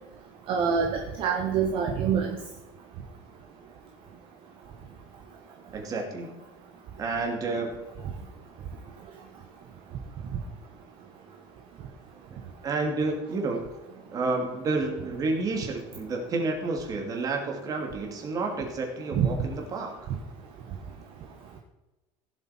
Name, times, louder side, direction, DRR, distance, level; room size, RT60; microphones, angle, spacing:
voice 1, 0.5-2.4 19.2-19.3, right 7 dB, 45° right, 2 dB, 1.3 m, -25 dB
voice 2, 5.7-6.3 7.0-7.8 12.6-13.7 14.1-20.1, right 3 dB, 30° right, 2 dB, 2.5 m, -30 dB
16.0 x 7.7 x 4.4 m, 1.1 s
cardioid pair, 155°, 12 cm